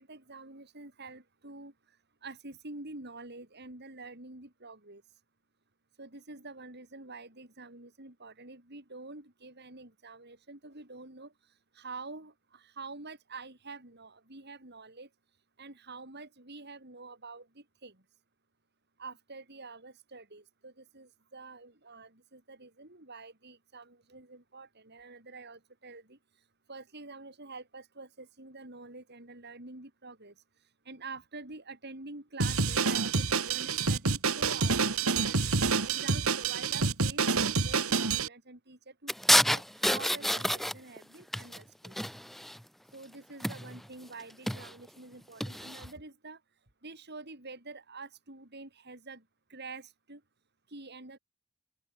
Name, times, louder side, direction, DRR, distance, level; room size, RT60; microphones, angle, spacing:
voice 1, 0.0-1.7 2.2-5.0 6.0-11.3 11.7-15.1 15.6-18.0 19.0-26.2 26.7-30.3 30.8-35.4 35.8-39.1 39.5-42.0 42.9-46.4 46.8-49.2 49.5-50.2 50.7-51.2, right 3 dB, 50° right, 4.2 m, -47 dB
Drum kit, 32.4-38.3, right 4 dB, 80° right, 2.4 m, -28 dB
sound 1, 39.1-41.0 41.3-42.6 43.4-43.9 44.3-44.7 45.4-45.9, equal, ahead, 0.5 m, -28 dB
open air
head